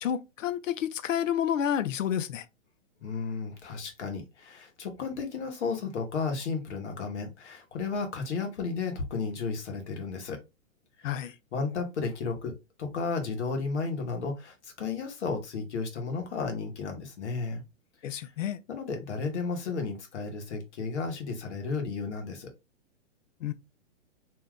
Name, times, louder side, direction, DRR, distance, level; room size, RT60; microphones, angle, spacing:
voice 1, 0.0-2.4 11.0-11.3 18.0-18.6 23.4-23.5, left 9 dB, 80° left, 0.6 m, -29 dB
voice 2, 3.0-10.4 11.0-11.2 11.5-12.5 12.8-17.6 18.1-18.2 18.7-22.5, left 4 dB, 60° left, 1.2 m, -33 dB
2.8 x 2.3 x 3.5 m
hypercardioid pair, 155°, 38 cm